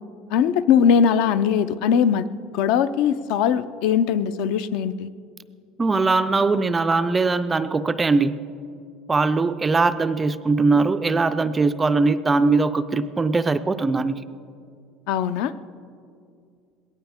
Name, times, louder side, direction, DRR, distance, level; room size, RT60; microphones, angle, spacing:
voice 1, 0.3-2.3 2.5-5.1 15.1-15.5, left 7 dB, 60° left, 14 dB, 0.5 m, -20 dB
voice 2, 5.8-8.4 9.1-14.2, right 3 dB, 15° right, 12 dB, 0.3 m, -21 dB
20.5 x 17.5 x 3.6 m, 2.4 s
cardioid pair, 175°, 0 cm